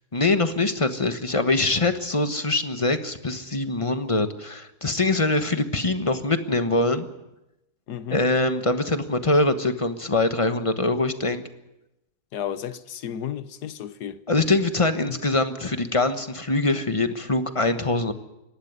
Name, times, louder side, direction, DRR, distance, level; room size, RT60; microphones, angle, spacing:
voice 1, 0.1-7.1 8.1-11.4 14.3-18.1, left 2 dB, 20° left, 1.1 m, -23 dB
voice 2, 7.9-8.2 12.3-14.2 15.1-15.2, left 10 dB, 85° left, 1.5 m, -33 dB
26.5 x 11.5 x 9.6 m
omnidirectional pair, 1.7 m